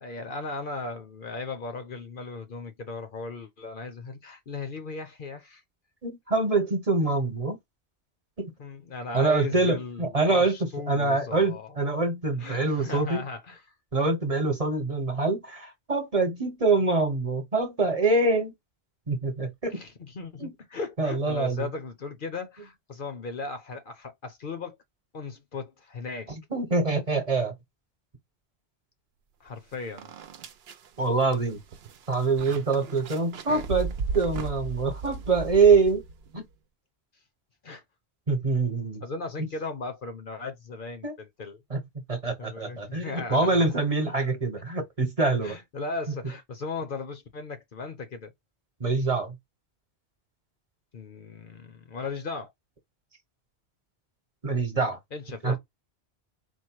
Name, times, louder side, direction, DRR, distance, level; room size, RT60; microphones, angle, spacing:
voice 1, 0.0-5.6 8.6-11.8 12.4-13.6 19.7-24.8 25.1-26.3 29.4-30.1 37.6-37.8 39.0-41.6 42.4-43.6 44.1-44.4 45.4-48.3 50.9-52.5 55.1-55.6, left 4 dB, 55° left, 0.9 m, -37 dB
voice 2, 6.0-7.6 8.4-8.5 9.1-13.2 13.9-18.5 19.1-19.8 20.4-20.5 21.0-21.7 26.5-27.5 31.0-31.6 32.1-36.0 36.3-36.4 38.3-39.0 41.0-41.2 41.7-41.8 42.1-45.6 48.8-49.3 54.4-55.0 55.4-55.6, right 3 dB, 35° right, 1.1 m, -25 dB
sound 1, 29.5-29.6 30.0-36.3, right 4 dB, 70° right, 0.9 m, -36 dB
4.4 x 2.1 x 4.4 m
omnidirectional pair, 1.1 m